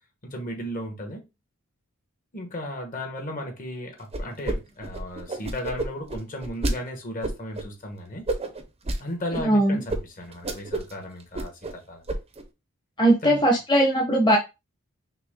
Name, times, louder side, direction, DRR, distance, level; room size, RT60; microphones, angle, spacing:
voice 1, 0.2-1.2 2.3-8.2 9.0-12.0 13.2-13.4, equal, 45° left, 1.2 m, -35 dB
sound 1, 4.1-4.6 4.8-6.7 7.2-7.6 8.3-9.0 9.3-9.4 9.9-10.0 10.3-10.9 11.2-11.7 12.1-12.4, right 2 dB, 30° right, 0.6 m, -29 dB
voice 2, 9.4-9.8 13.0-14.4, right 1 dB, 20° left, 0.9 m, -19 dB
5.8 x 2.1 x 3.6 m
head